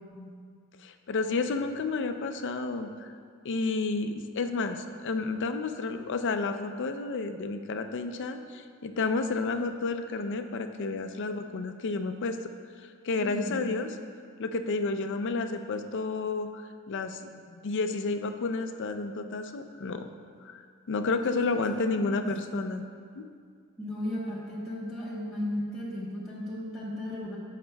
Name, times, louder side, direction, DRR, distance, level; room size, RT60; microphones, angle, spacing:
voice 1, 0.8-3.1 3.4-12.4 13.0-13.9 14.4-16.6 16.9-20.1 20.4-22.8 23.2-23.3, left 3 dB, 55° left, 7 dB, 0.4 m, -31 dB
voice 2, 13.2-13.6 21.3-22.6 23.8-27.4, left 1 dB, ahead, -10 dB, 1.0 m, -36 dB
14.0 x 5.7 x 2.2 m, 2.1 s
head